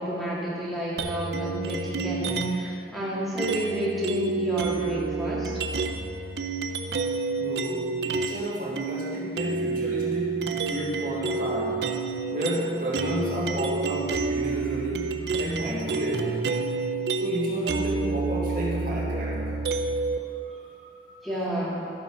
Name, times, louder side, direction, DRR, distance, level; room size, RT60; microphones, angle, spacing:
voice 1, 0.0-5.5 21.2-21.9, equal, ahead, -9 dB, 2.2 m, -30 dB
sound 1, 1.0-2.7 3.4-8.5 8.8-20.2, right 4 dB, 65° right, 0.6 m, -29 dB
voice 2, 7.4-11.9 12.3-16.4 17.2-19.6 20.4-21.2, right 1 dB, 45° right, -6 dB, 2.4 m, -31 dB
12.0 x 7.5 x 5.5 m, 2.4 s
head